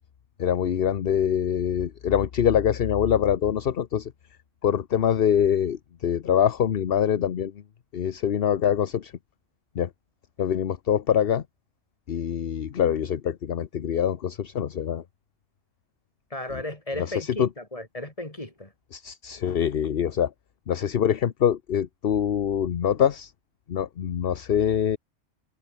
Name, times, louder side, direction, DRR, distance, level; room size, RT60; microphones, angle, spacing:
voice 1, 0.4-4.1 4.6-7.6 7.9-9.1 9.7-9.9 10.4-11.4 12.1-15.0 17.0-17.5 18.9-20.3 20.7-23.3 23.7-25.0, left 9 dB, 55° left, 1.0 m, -24 dB
voice 2, 16.3-18.7, left 1 dB, 30° left, 3.9 m, -35 dB
omnidirectional pair, 1.2 m